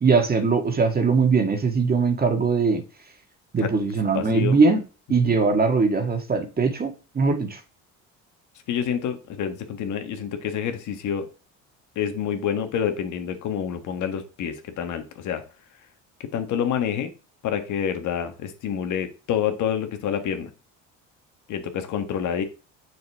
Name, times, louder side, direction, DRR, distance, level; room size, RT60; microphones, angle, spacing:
voice 1, 0.0-2.8 3.5-4.8 5.1-7.6, right 4 dB, 30° right, 5 dB, 1.7 m, -21 dB
voice 2, 4.1-4.6 5.2-5.3 8.7-11.3 11.9-15.4 16.2-17.1 17.4-20.5 21.5-22.4, left 8 dB, 65° left, 7 dB, 1.5 m, -28 dB
7.1 x 6.4 x 3.5 m, 0.33 s
supercardioid pair, 95°, 32 cm